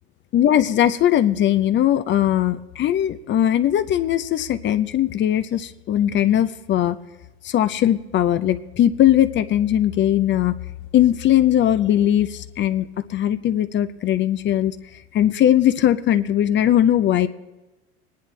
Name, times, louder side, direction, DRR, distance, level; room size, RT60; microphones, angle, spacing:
voice 1, 0.3-7.0 7.4-10.5 10.9-14.8 15.1-17.3, left 11 dB, 35° left, 11 dB, 0.6 m, -19 dB
23.5 x 10.5 x 3.2 m, 1.1 s
hypercardioid pair, 90°, 33 cm